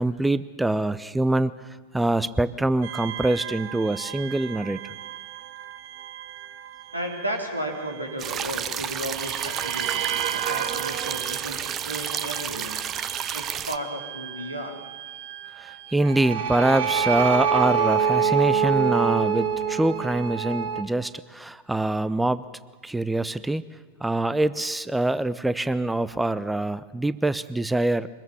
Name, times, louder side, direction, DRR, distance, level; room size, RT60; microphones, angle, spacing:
voice 1, 0.0-1.5 1.9-4.9 15.6-22.4 22.8-23.6 24.0-28.1, right 2 dB, 5° right, 16 dB, 0.7 m, -24 dB
sound 1, 2.8-8.7 9.1-20.8, right 7 dB, 50° right, 1.6 m, -29 dB
voice 2, 6.9-12.8 13.3-14.7, equal, 85° right, 3 dB, 3.5 m, -34 dB
sound 2, 8.2-13.8, right 9 dB, 30° right, 0.9 m, -31 dB
24.5 x 21.0 x 7.1 m, 1.5 s
figure-of-eight pair, 90°, 0 cm